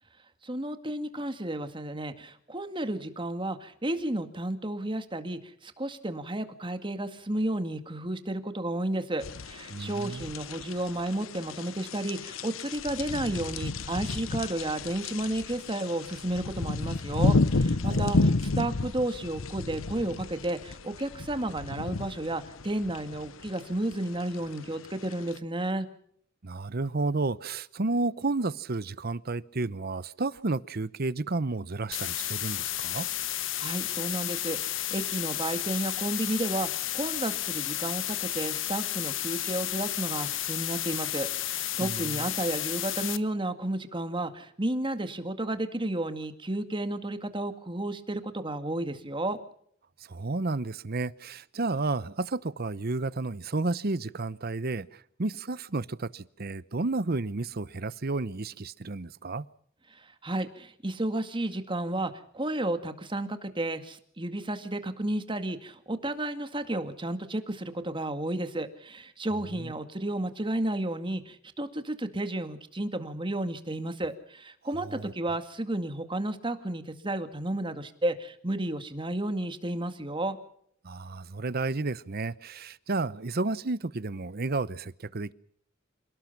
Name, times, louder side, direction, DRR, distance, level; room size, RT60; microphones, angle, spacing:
voice 1, 0.4-25.9 33.6-49.4 59.9-80.4, right 1 dB, 25° right, 2.1 m, -32 dB
sound 1, 9.2-25.4, left 3 dB, 80° left, 0.9 m, -31 dB
voice 2, 9.7-10.3 17.8-18.3 26.4-33.1 41.8-42.3 50.1-59.5 69.5-69.7 74.8-75.1 80.8-85.3, right 3 dB, 50° right, 0.8 m, -32 dB
sound 2, 31.9-43.2, left 13 dB, 65° left, 1.2 m, -32 dB
28.0 x 18.5 x 6.0 m
head